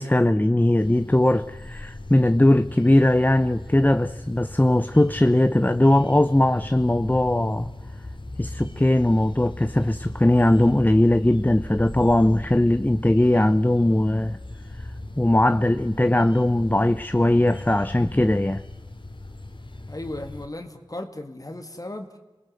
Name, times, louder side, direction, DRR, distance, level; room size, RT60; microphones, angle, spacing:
voice 1, 0.0-7.7 8.4-14.4 15.2-18.6, left 1 dB, 20° left, 0.7 m, -20 dB
sound 1, 0.8-20.5, left 1 dB, 60° left, 2.8 m, -38 dB
voice 2, 19.9-22.2, left 1 dB, 40° left, 2.0 m, -36 dB
28.0 x 19.5 x 8.0 m
wide cardioid pair, 50°, 10 cm